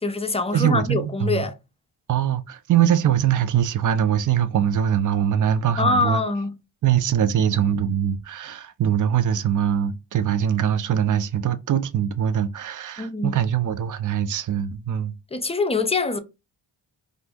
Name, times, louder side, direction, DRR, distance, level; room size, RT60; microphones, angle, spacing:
voice 1, 0.0-1.5 5.8-6.5 13.0-13.4 15.3-16.2, left 3 dB, 15° left, 0.4 m, -24 dB
voice 2, 0.5-1.4 2.1-6.2 6.8-15.1, right 9 dB, 40° right, 0.5 m, -22 dB
2.7 x 2.6 x 3.4 m
cardioid pair, 75°, 47 cm